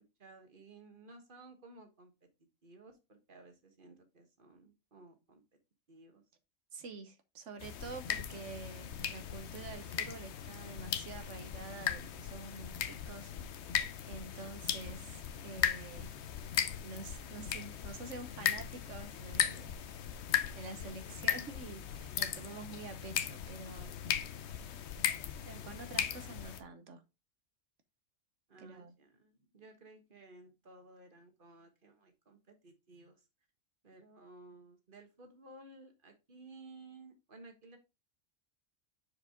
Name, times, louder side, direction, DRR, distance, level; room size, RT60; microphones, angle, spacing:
voice 1, 0.2-2.1 2.6-5.4 5.9-6.2 28.5-33.2 33.8-37.8, right 2 dB, 45° right, 1.6 m, -56 dB
voice 2, 6.7-13.6 14.1-16.1 16.8-19.7 20.6-23.9 24.2-24.6 25.4-27.0 28.6-28.9, right 4 dB, 75° right, 1.3 m, -48 dB
sound 1, 7.6-26.6, left 9 dB, 65° left, 0.9 m, -37 dB
6.4 x 4.8 x 3.7 m
omnidirectional pair, 1.3 m